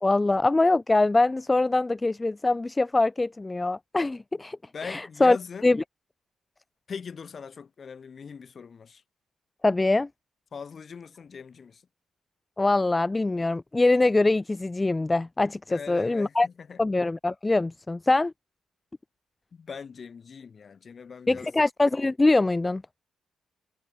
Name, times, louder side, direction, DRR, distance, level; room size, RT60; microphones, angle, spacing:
voice 1, 0.0-4.6 4.8-5.4 5.6-5.8 9.6-10.1 12.6-16.5 16.8-18.3 21.3-22.8, left 2 dB, 15° left, 0.5 m, -23 dB
voice 2, 4.7-5.7 6.9-9.0 10.5-11.8 15.7-16.8 19.5-21.5, left 6 dB, 40° left, 6.2 m, -41 dB
cardioid pair, 150°, 0 cm